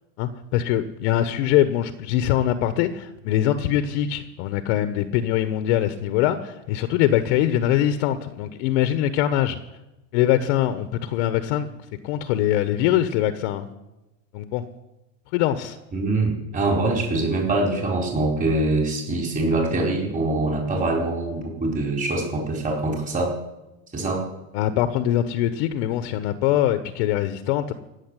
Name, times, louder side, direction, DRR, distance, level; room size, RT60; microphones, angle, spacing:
voice 1, 0.2-9.6 10.1-11.7 12.0-13.7 14.3-14.6 15.3-15.8 24.5-27.7, left 12 dB, 60° left, 10 dB, 1.2 m, -23 dB
voice 2, 15.9-23.3 23.9-24.2, right 2 dB, 20° right, 0 dB, 4.6 m, -24 dB
16.0 x 7.3 x 9.9 m, 0.98 s
supercardioid pair, 120°, 39 cm